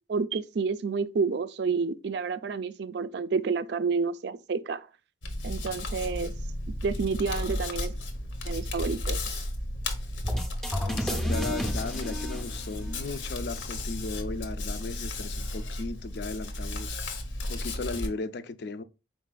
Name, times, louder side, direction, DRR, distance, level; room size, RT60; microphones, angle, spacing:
voice 1, 0.1-4.9 5.4-6.4 6.8-7.9 8.4-9.4 11.1-11.2, right 5 dB, 65° right, 0.3 m, -29 dB
Hands, 5.2-18.1, left 1 dB, 85° left, 0.8 m, -34 dB
sound 1, 10.2-13.1, equal, 5° left, 0.5 m, -31 dB
voice 2, 10.9-17.0 17.5-18.8, left 3 dB, 60° left, 0.4 m, -36 dB
5.0 x 4.1 x 2.2 m
head